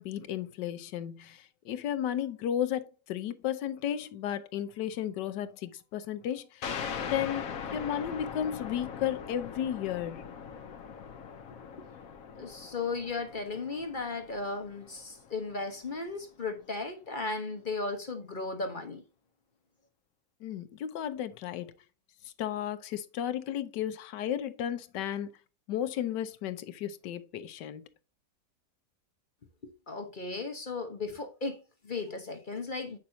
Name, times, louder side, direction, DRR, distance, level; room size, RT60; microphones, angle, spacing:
voice 1, 0.0-6.8 7.1-10.3 20.4-21.7 22.2-25.3 25.7-27.9, left 10 dB, 90° left, 1.4 m, -34 dB
sound 1, 6.6-15.8, left 7 dB, 60° left, 1.1 m, -41 dB
voice 2, 12.4-19.0 29.6-33.0, left 3 dB, 40° left, 0.8 m, -36 dB
8.6 x 6.0 x 2.7 m
omnidirectional pair, 1.8 m